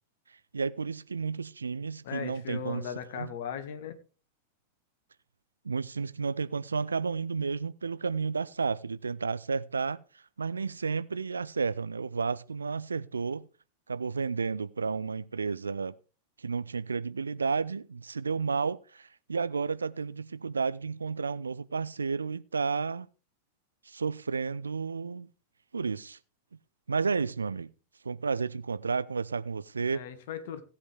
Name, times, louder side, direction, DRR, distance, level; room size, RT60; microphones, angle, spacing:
voice 1, 0.5-2.9 3.2-3.3 5.6-13.5 13.9-16.0 16.4-23.1 23.8-25.3 25.7-26.2 26.9-27.7 28.0-30.1, right 5 dB, 75° right, 0.5 m, -32 dB
voice 2, 2.0-4.0 29.9-30.6, left 8 dB, 55° left, 1.7 m, -38 dB
17.0 x 8.0 x 3.4 m
figure-of-eight pair, 90°, 0 cm